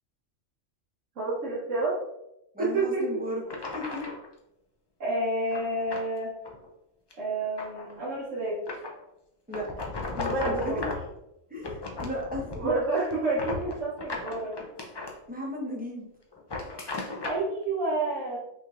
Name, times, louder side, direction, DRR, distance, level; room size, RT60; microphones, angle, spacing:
voice 1, 1.1-2.0 2.6-3.2 5.0-6.3 7.2-8.6 10.2-10.8 12.6-14.6 17.2-18.4, right 2 dB, 90° right, -8 dB, 1.4 m, -29 dB
voice 2, 2.5-4.0 9.5-9.7 10.1-10.8 11.5-12.7 15.3-16.1, left 1 dB, 10° right, -4 dB, 1.0 m, -35 dB
sound 1, 2.8-2.9 3.5-4.3 5.5-6.1 6.4-6.7 7.1-8.0 8.7-9.0 9.5-11.1 11.6-12.8 13.1-15.1 16.3-17.4, left 3 dB, 35° left, 0.4 m, -36 dB
5.6 x 3.1 x 2.5 m, 0.85 s
omnidirectional pair, 1.2 m